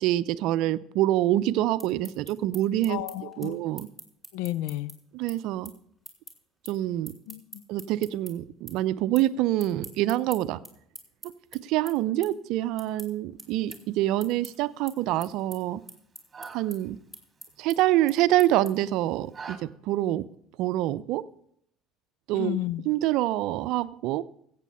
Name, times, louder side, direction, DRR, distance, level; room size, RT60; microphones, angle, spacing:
voice 1, 0.0-3.0 3.4-3.9 5.1-5.7 6.7-7.1 7.7-10.6 11.5-15.8 16.5-17.0 17.6-20.3 20.6-21.2 22.3-22.6 22.9-24.2, right 14 dB, 65° right, 17 dB, 0.5 m, -26 dB
sound 1, 1.8-8.3 8.7-9.3 9.6-19.0, right 1 dB, 5° left, 3.6 m, -46 dB
voice 2, 2.9-3.6 4.3-4.9 7.3-7.6 22.3-22.8, left 14 dB, 75° left, 17 dB, 0.6 m, -32 dB
sound 2, 13.4-19.6, right 5 dB, 25° right, 1.8 m, -49 dB
15.0 x 8.3 x 5.5 m, 0.70 s
hypercardioid pair, 75°, 0 cm